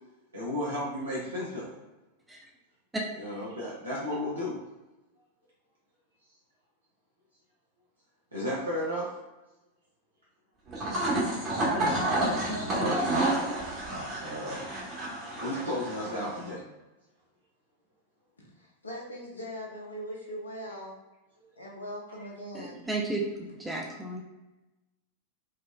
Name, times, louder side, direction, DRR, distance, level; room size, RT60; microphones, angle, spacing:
voice 1, 0.3-1.7 3.2-4.6 8.3-9.2 11.9-12.4 12.8-13.1 14.2-14.6 15.4-16.6, equal, 75° right, -7 dB, 0.8 m, -33 dB
sound 1, 10.7-16.5, right 1 dB, 35° right, 1.2 m, -30 dB
voice 2, 18.6-21.0 21.6-22.8, equal, 80° left, -2 dB, 0.8 m, -40 dB
voice 3, 22.5-24.2, right 2 dB, 10° right, -2 dB, 0.5 m, -33 dB
4.6 x 2.3 x 2.2 m, 1.0 s
figure-of-eight pair, 90°, 0 cm